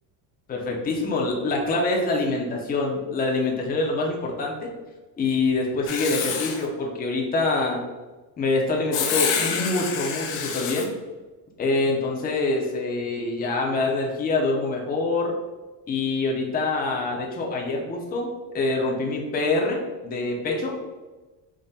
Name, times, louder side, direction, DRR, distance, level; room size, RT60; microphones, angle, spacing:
voice 1, 0.5-4.7 5.2-7.8 8.4-10.9 11.6-15.3 15.9-18.3 18.5-20.7, left 3 dB, 20° left, 0 dB, 0.5 m, -25 dB
Writing, 5.9-6.6 8.9-10.9, left 6 dB, 80° left, 0.7 m, -27 dB
3.6 x 2.1 x 4.0 m, 1.2 s
cardioid pair, 130°, 49 cm